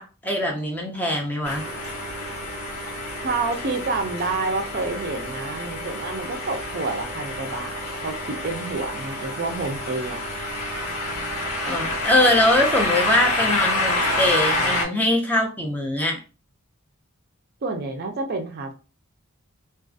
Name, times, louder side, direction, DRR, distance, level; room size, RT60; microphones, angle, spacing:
voice 1, 0.0-1.6 11.7-16.2, left 1 dB, 10° left, 0 dB, 0.5 m, -22 dB
sound 1, 1.4-14.8, left 1 dB, 85° left, 1.1 m, -28 dB
voice 2, 3.2-10.2 17.6-18.7, right 3 dB, 45° right, 4 dB, 0.4 m, -29 dB
2.5 x 2.4 x 2.3 m, 0.33 s
head